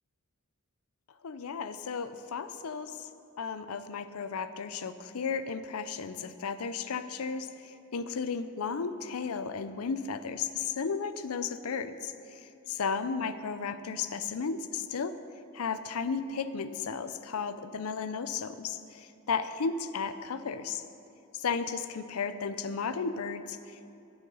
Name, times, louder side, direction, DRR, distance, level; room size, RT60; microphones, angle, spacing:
voice 1, 1.2-3.1 3.4-12.1 12.7-15.2 15.5-20.8 21.3-23.9, left 5 dB, 80° left, 12 dB, 0.5 m, -34 dB
12.0 x 7.0 x 5.5 m, 2.9 s
head